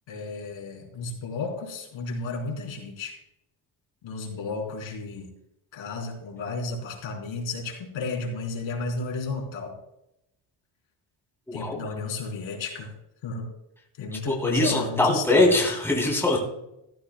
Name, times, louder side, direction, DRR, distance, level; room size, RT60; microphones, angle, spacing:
voice 1, 0.1-3.2 4.0-5.3 5.7-9.7 11.5-12.9 13.2-13.5 14.0-15.5, left 3 dB, 70° left, -1 dB, 4.1 m, -33 dB
voice 2, 11.5-11.8 14.3-16.4, left 2 dB, 5° left, -3 dB, 3.2 m, -22 dB
15.5 x 15.0 x 2.2 m, 0.84 s
cardioid pair, 170°, 48 cm